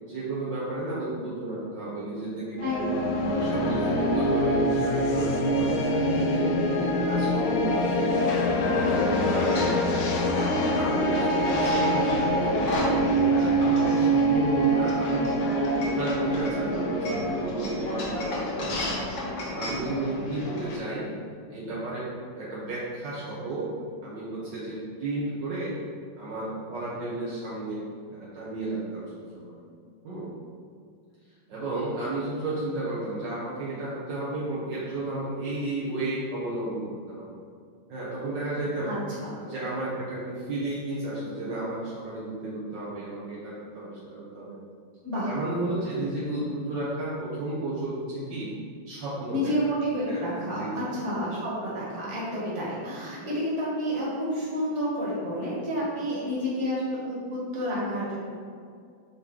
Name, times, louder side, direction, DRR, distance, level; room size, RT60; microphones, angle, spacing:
voice 1, 0.0-2.9 3.3-6.5 6.9-8.1 8.5-10.1 10.5-12.8 13.3-15.3 15.7-18.7 19.5-21.1 21.5-22.0 22.3-23.7 24.0-25.8 26.2-27.8 28.1-29.6 30.0-30.3 31.5-37.4 37.9-38.9 39.4-44.5 45.2-48.5 48.9-49.5 50.1-50.2 50.5-50.9, right 2 dB, 65° right, -8 dB, 1.7 m, -33 dB
sound 1, 2.6-20.8, equal, 85° left, 0.7 m, -25 dB
voice 2, 2.6-3.2 19.8-20.0 38.8-39.3 45.0-45.3 49.3-58.2, equal, 35° right, -7 dB, 1.9 m, -30 dB
sound 2, 8.1-20.8, left 1 dB, 50° left, 0.9 m, -34 dB
8.3 x 3.2 x 3.9 m, 2.2 s
omnidirectional pair, 2.2 m